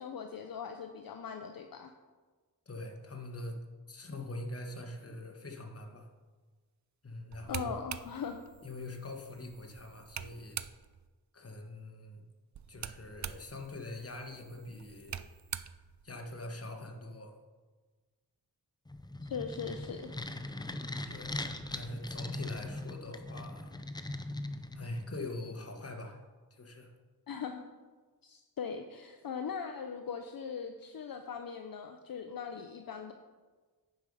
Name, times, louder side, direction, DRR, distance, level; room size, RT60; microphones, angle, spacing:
voice 1, 0.0-1.9 7.5-8.4 19.3-20.2 27.3-27.6 28.2-33.1, left 6 dB, 65° left, 5 dB, 0.6 m, -40 dB
voice 2, 2.7-3.6 3.9-6.1 7.0-7.9 8.6-10.6 11.3-12.2 12.7-15.2 16.0-17.4 21.1-21.3 21.7-23.7 24.7-26.2 26.5-26.9, left 2 dB, 40° left, 2 dB, 1.4 m, -43 dB
sound 1, 7.3-11.1 12.5-16.7, right 9 dB, 50° right, 0.4 m, -45 dB
sound 2, 18.9-25.2, left 2 dB, 10° left, 0.5 m, -40 dB
9.3 x 5.5 x 4.8 m, 1.4 s
cardioid pair, 65°, 38 cm